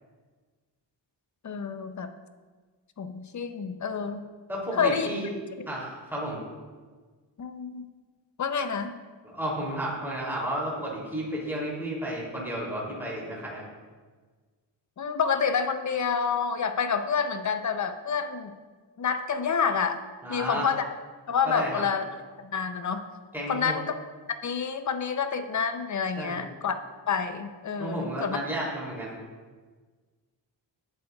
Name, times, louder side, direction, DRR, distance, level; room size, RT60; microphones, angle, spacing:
voice 1, 1.4-2.1 3.0-4.2 4.8-5.1 7.4-7.9 8.4-8.9 15.0-18.5 19.0-20.0 20.3-20.8 21.3-22.0 22.4-23.0 23.5-23.9 24.3-26.7 27.1-28.4, left 6 dB, 40° left, 8 dB, 0.7 m, -28 dB
voice 2, 4.5-5.3 5.7-6.4 9.3-13.7 20.2-20.7 21.4-21.8 23.3-23.8 26.2-26.5 27.8-29.1, right 1 dB, 5° right, -5 dB, 3.0 m, -32 dB
18.5 x 7.9 x 2.4 m, 1.4 s
wide cardioid pair, 155°, 45 cm